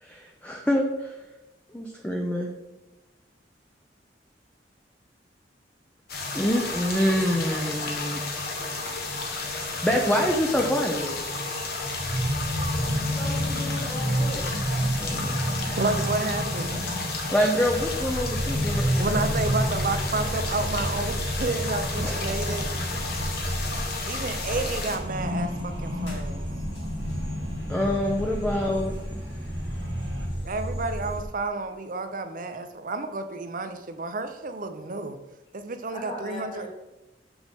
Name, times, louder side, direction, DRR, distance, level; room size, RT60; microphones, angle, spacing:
voice 1, 0.0-1.1 1.7-2.5 6.3-8.3 9.8-11.2 15.0-15.4 17.3-19.3 22.0-22.2 27.7-29.2, equal, 10° left, 0 dB, 0.6 m, -26 dB
sound 1, 6.1-25.0, left 3 dB, 60° left, 1.2 m, -32 dB
sound 2, 11.9-24.2 24.5-30.3, equal, 75° right, 2.2 m, -31 dB
voice 2, 13.1-14.5 35.9-36.7, left 1 dB, 30° left, -3 dB, 1.6 m, -37 dB
voice 3, 15.8-17.0 19.0-22.7 24.1-26.5 30.4-35.2 35.5-36.7, right 3 dB, 50° right, 8 dB, 0.6 m, -30 dB
sound 3, 17.6-31.2, equal, 80° left, 2.2 m, -34 dB
6.9 x 6.1 x 3.5 m, 1.0 s
head